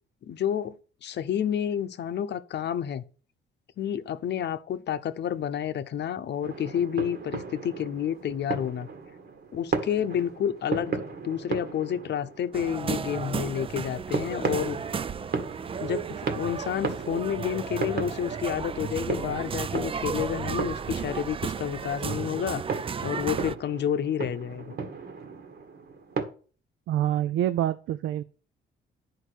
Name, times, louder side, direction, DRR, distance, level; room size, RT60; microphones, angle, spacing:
voice 1, 0.2-0.8 1.0-3.0 3.8-8.9 9.5-14.8 15.8-22.6 23.0-24.7, left 9 dB, 60° left, 0.7 m, -30 dB
sound 1, 6.4-26.2, right 5 dB, 55° right, 1.7 m, -36 dB
sound 2, 12.5-23.5, right 6 dB, 30° right, 0.4 m, -34 dB
voice 2, 26.9-28.2, right 11 dB, 80° right, 0.5 m, -26 dB
10.0 x 4.8 x 6.3 m
cardioid pair, 90°, 20 cm